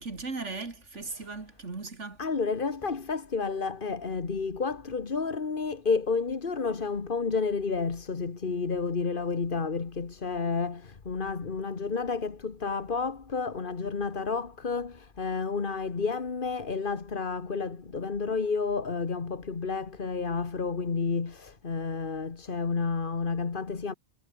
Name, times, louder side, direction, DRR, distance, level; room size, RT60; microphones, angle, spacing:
voice 1, 0.0-2.2, right 3 dB, 75° right, 3.1 m, -37 dB
voice 2, 1.0-1.4 2.2-23.9, left 4 dB, 45° left, 1.7 m, -31 dB
omnidirectional pair, 1.2 m